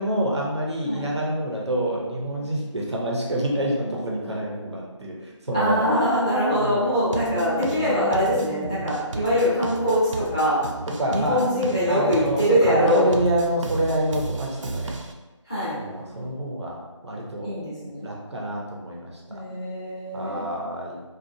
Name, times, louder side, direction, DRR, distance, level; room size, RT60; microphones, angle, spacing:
voice 1, 0.0-6.0 6.5-7.2 11.0-11.4 11.9-15.0 15.7-17.5 18.0-19.4 20.1-21.0, right 1 dB, 60° right, -2 dB, 0.7 m, -27 dB
voice 2, 5.5-10.6 11.1-13.1 15.5-15.7 17.4-18.1 19.3-20.5, equal, 10° left, -14 dB, 0.5 m, -23 dB
sound 1, 7.1-15.1, right 2 dB, 80° right, 0.4 m, -33 dB
2.6 x 2.4 x 2.6 m, 1.2 s
figure-of-eight pair, 170°, 16 cm